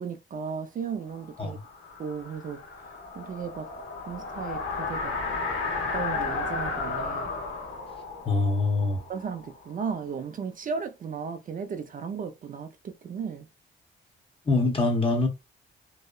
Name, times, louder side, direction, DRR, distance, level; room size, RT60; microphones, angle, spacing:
voice 1, 0.0-1.6 2.0-3.7 4.1-5.2 5.9-7.3 9.1-13.5, right 6 dB, 45° right, 0.4 m, -35 dB
sound 1, 1.3-10.0, left 4 dB, 80° left, 1.0 m, -33 dB
voice 2, 8.2-9.0 14.5-15.3, left 3 dB, 25° left, 0.8 m, -24 dB
2.8 x 2.1 x 2.3 m
cardioid pair, 95°, 20 cm